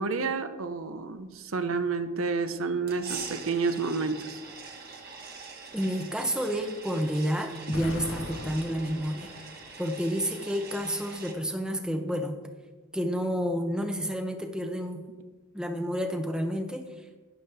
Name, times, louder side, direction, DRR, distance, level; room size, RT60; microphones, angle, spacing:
voice 1, 0.0-4.4, right 4 dB, 70° right, 10 dB, 0.7 m, -30 dB
sound 1, 2.9-11.3, right 5 dB, 45° right, 1.4 m, -43 dB
voice 2, 5.7-9.3 9.8-12.4 12.9-15.0 15.5-16.8, equal, 5° right, 5 dB, 0.7 m, -30 dB
Explosion, 7.7-9.8, left 2 dB, 60° left, 0.8 m, -39 dB
12.5 x 10.5 x 3.4 m, 1.3 s
head